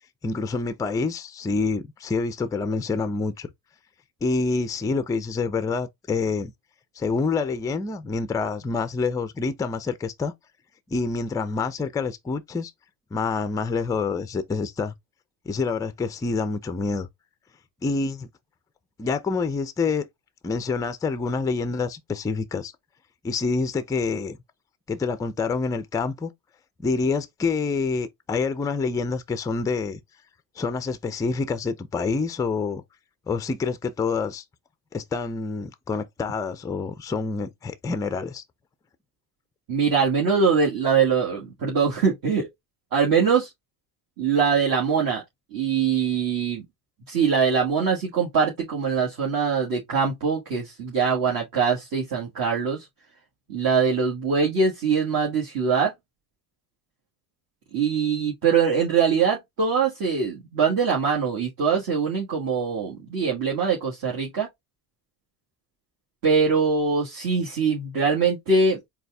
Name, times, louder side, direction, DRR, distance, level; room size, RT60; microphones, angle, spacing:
voice 1, 0.2-3.5 4.2-6.5 7.0-10.3 10.9-12.7 13.1-14.9 15.5-17.1 17.8-18.3 19.0-20.1 20.4-22.7 23.2-24.4 24.9-26.3 26.8-30.0 30.6-32.8 33.3-34.4 34.9-38.4, left 4 dB, 10° left, 0.3 m, -27 dB
voice 2, 39.7-42.5 42.9-43.5 44.2-45.2 45.5-46.6 47.1-52.9 53.5-55.9 57.7-64.5 66.2-68.8, right 5 dB, 45° right, 1.6 m, -23 dB
4.0 x 2.3 x 3.3 m
supercardioid pair, 90°, 47 cm